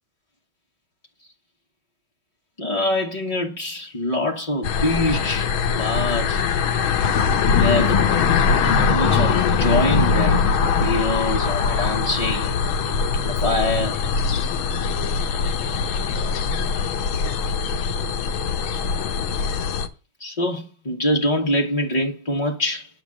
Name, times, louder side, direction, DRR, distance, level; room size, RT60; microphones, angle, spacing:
voice 1, 2.6-6.4 7.5-8.0 8.9-10.4 10.8-12.6 13.2-14.0 20.2-22.9, left 1 dB, 35° left, 0.6 m, -24 dB
sound 1, 4.6-19.9, left 5 dB, 80° left, 1.8 m, -21 dB
9.1 x 5.1 x 7.4 m
omnidirectional pair, 2.2 m